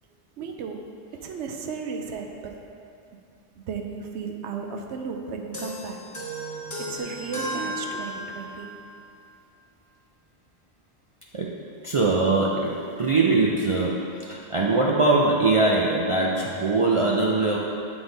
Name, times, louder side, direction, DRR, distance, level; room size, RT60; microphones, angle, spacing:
voice 1, 0.4-0.8 1.2-2.5 3.6-6.0 6.8-8.7, right 5 dB, 85° right, 3 dB, 0.9 m, -34 dB
sound 1, 5.5-8.7, right 1 dB, 20° left, 0.9 m, -34 dB
voice 2, 11.3-17.6, right 3 dB, 50° right, -4 dB, 0.4 m, -22 dB
7.9 x 3.9 x 3.9 m, 2.5 s
omnidirectional pair, 1.1 m